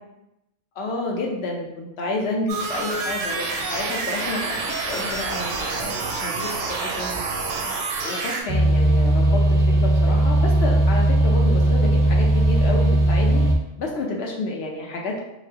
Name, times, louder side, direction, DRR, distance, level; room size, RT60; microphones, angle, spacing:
voice 1, 0.8-7.2 8.0-13.4 13.8-15.2, left 2 dB, 65° left, 0 dB, 0.8 m, -30 dB
sound 1, 2.5-8.4, right 3 dB, 90° right, 0.9 m, -28 dB
sound 2, 8.5-13.5, right 1 dB, 50° right, 0.5 m, -18 dB
4.1 x 2.0 x 2.7 m, 0.91 s
omnidirectional pair, 1.2 m